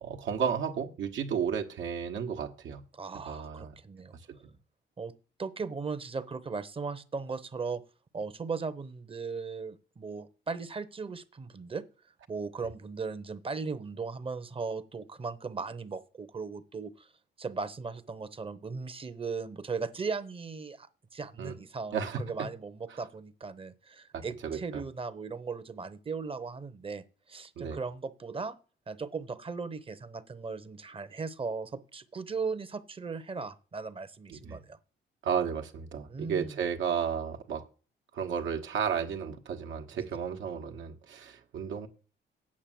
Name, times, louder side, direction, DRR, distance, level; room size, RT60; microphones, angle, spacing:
voice 1, 0.0-2.8 3.1-3.7 4.3-4.4 21.4-21.6 21.9-22.5 22.9-23.0 24.1-24.8 27.6-27.8 34.3-34.6 35.2-37.6 38.1-41.9, right 7 dB, 75° right, 1.3 m, -33 dB
voice 2, 2.9-4.2 5.0-5.1 5.4-7.8 8.1-11.8 12.3-17.1 17.4-28.6 28.9-34.8 36.1-36.6 39.9-40.1, right 4 dB, 25° right, 0.8 m, -37 dB
8.6 x 6.4 x 7.7 m
cardioid pair, 90°, 20 cm